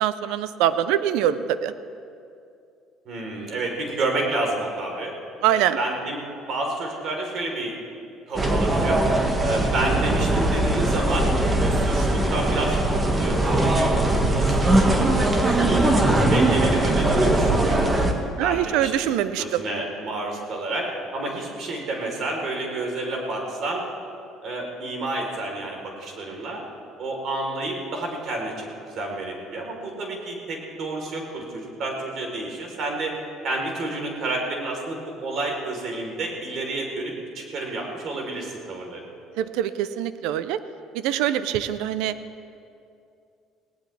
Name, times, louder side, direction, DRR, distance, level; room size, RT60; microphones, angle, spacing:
voice 1, 0.0-1.7 5.4-5.8 18.4-19.6 39.4-40.6 40.9-42.2, right 11 dB, 85° right, 13 dB, 0.6 m, -24 dB
voice 2, 3.1-5.1 5.5-6.2 6.5-7.8 8.3-9.0 9.4-11.3 11.6-13.9 14.3-15.8 16.3-17.8 18.4-19.1 19.4-23.8 24.4-26.6 27.0-28.7 28.9-33.1 33.4-39.0, right 2 dB, 55° right, 1 dB, 3.8 m, -30 dB
sound 1, 8.3-18.1, right 1 dB, 20° right, 1.7 m, -20 dB
19.5 x 17.5 x 3.4 m, 2.5 s
cardioid pair, 100°, 0 cm